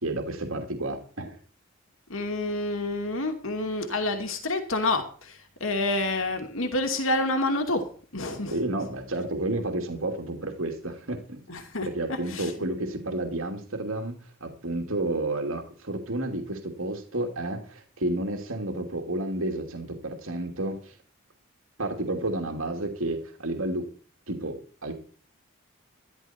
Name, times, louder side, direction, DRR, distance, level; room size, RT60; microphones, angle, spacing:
voice 1, 0.0-1.4 8.5-11.5 11.8-21.0 21.8-23.9 24.3-24.9, right 1 dB, 80° right, 3 dB, 2.7 m, -31 dB
voice 2, 2.1-7.8 8.1-8.6 11.5-12.5, left 2 dB, 75° left, 5 dB, 2.6 m, -28 dB
13.0 x 13.0 x 4.4 m, 0.42 s
head